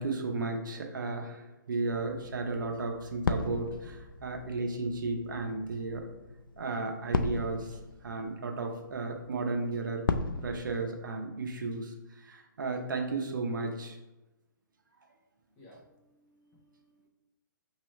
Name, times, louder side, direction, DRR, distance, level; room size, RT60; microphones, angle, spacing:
voice 1, 0.0-6.1 6.6-10.0 10.4-14.0, right 3 dB, 70° right, 3 dB, 0.8 m, -34 dB
sound 1, 1.9-10.9, left 4 dB, 90° left, 0.4 m, -37 dB
voice 2, 15.6-17.1, equal, 15° left, -4 dB, 0.9 m, -59 dB
5.6 x 2.9 x 3.2 m, 1.0 s
hypercardioid pair, 170°, 11 cm